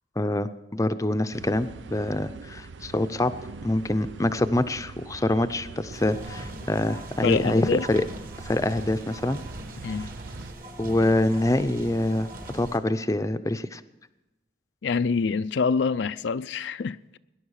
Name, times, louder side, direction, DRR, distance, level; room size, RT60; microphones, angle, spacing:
voice 1, 0.2-3.3 3.6-8.0 8.4-9.4 10.8-12.3 12.5-13.8, left 1 dB, 20° left, 0.6 m, -25 dB
sound 1, 1.3-10.5, right 4 dB, 85° right, 0.6 m, -43 dB
sound 2, 5.9-12.8, right 1 dB, 50° right, 2.0 m, -41 dB
voice 2, 7.2-7.9 9.8-10.1 14.8-17.2, left 5 dB, 75° left, 0.4 m, -26 dB
19.0 x 11.0 x 6.4 m
head